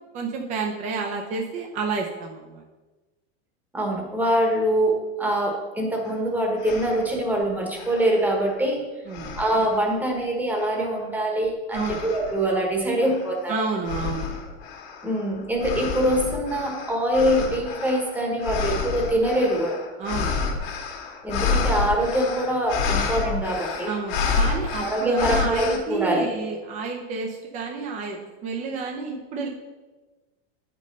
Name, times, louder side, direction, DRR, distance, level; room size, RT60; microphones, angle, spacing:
voice 1, 0.1-2.6 9.1-9.4 11.7-12.0 13.5-14.3 20.0-20.4 23.9-29.5, right 4 dB, 25° right, 1 dB, 0.7 m, -30 dB
voice 2, 3.7-8.8 9.4-13.6 15.0-19.8 21.2-23.9 24.8-26.3, right 1 dB, 5° right, 0 dB, 1.2 m, -24 dB
sound 1, 6.1-6.2 6.6-7.2 7.8-8.7 9.1-10.0 10.6-11.1 11.7-12.5 13.0-25.8, left 5 dB, 60° left, 1.7 m, -29 dB
8.9 x 5.3 x 5.3 m, 1.2 s
supercardioid pair, 165°, 32 cm